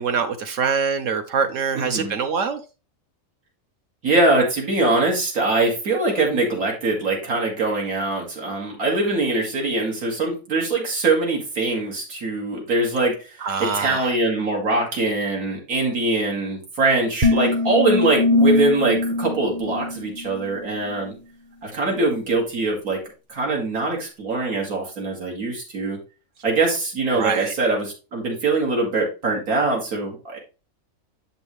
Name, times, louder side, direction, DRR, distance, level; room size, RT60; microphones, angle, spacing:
voice 1, 0.0-2.6 13.4-14.1 27.1-27.5, right 6 dB, 70° right, 1.0 m, -24 dB
voice 2, 1.8-2.1 4.0-13.3 13.6-21.1 21.6-23.0 23.3-26.0 26.4-30.4, right 2 dB, 90° right, 2.3 m, -22 dB
sound 1, 17.2-20.6, left 2 dB, 40° right, 1.0 m, -22 dB
7.1 x 5.4 x 3.1 m
omnidirectional pair, 1.5 m